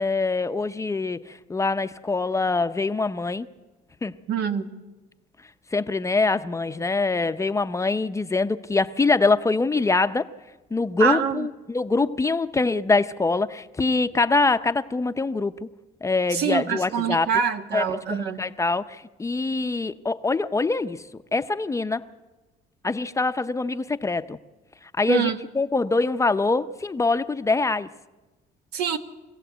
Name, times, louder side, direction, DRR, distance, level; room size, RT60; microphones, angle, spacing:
voice 1, 0.0-3.5 4.0-4.1 5.7-10.3 10.7-15.7 16.0-17.3 17.7-17.8 18.1-21.0 21.3-22.1 22.8-24.4 25.0-27.9, left 3 dB, 20° left, 11 dB, 0.6 m, -24 dB
voice 2, 4.3-4.7 11.0-11.5 16.3-18.4 25.1-25.4 28.7-29.0, right 7 dB, 75° right, 7 dB, 1.5 m, -25 dB
24.5 x 16.5 x 8.1 m, 1.2 s
cardioid pair, 110°, 17 cm